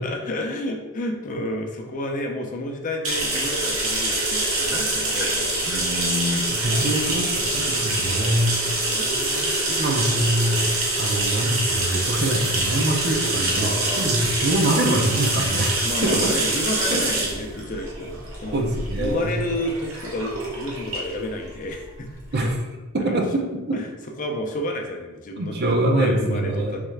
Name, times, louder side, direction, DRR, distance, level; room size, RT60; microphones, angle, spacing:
voice 1, 0.0-5.8 6.8-7.4 8.0-9.6 13.5-14.3 15.8-18.6 19.0-22.5 23.1-23.2 23.7-23.9 24.2-25.6 25.9-26.8, left 1 dB, 40° left, 2 dB, 0.5 m, -31 dB
sound 1, 3.0-22.5, right 2 dB, 75° right, 1.0 m, -25 dB
voice 2, 5.7-8.6 9.7-16.3 16.9-17.0 18.5-19.4 22.3-22.5 22.9-23.8 25.4-26.8, right 1 dB, 50° right, 2 dB, 0.6 m, -24 dB
3.6 x 3.2 x 3.2 m, 1.2 s
head